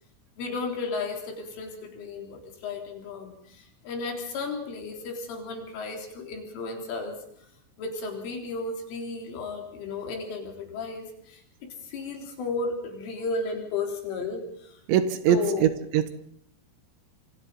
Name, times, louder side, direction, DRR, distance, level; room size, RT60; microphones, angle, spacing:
voice 1, 0.4-7.2 7.8-14.8 15.3-15.7, left 3 dB, 75° left, 2 dB, 6.3 m, -34 dB
voice 2, 14.9-16.1, right 9 dB, 75° right, 10 dB, 3.1 m, -23 dB
27.0 x 24.5 x 4.1 m, 0.68 s
omnidirectional pair, 5.8 m